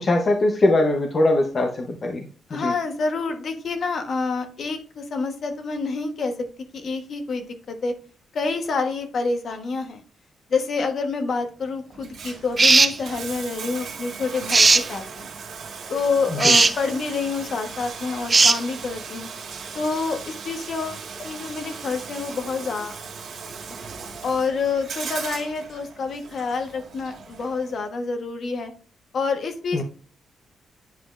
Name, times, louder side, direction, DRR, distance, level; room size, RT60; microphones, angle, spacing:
voice 1, 0.0-2.7 16.4-16.5 29.7-29.8, left 2 dB, 40° left, 3 dB, 0.8 m, -21 dB
voice 2, 2.5-6.3 6.7-7.9 8.3-10.0 10.5-15.3 15.9-19.3 19.7-23.0 24.2-28.7 29.1-29.8, left 4 dB, 60° left, 6 dB, 1.2 m, -27 dB
Bathtub (filling or washing), 11.9-27.9, right 5 dB, 70° right, 1.7 m, -37 dB
sound 1, 12.6-13.0 14.5-14.9 16.4-16.7 18.3-18.6, right 3 dB, 30° right, 0.5 m, -15 dB
9.3 x 5.1 x 2.5 m, 0.40 s
cardioid pair, 95°, 0 cm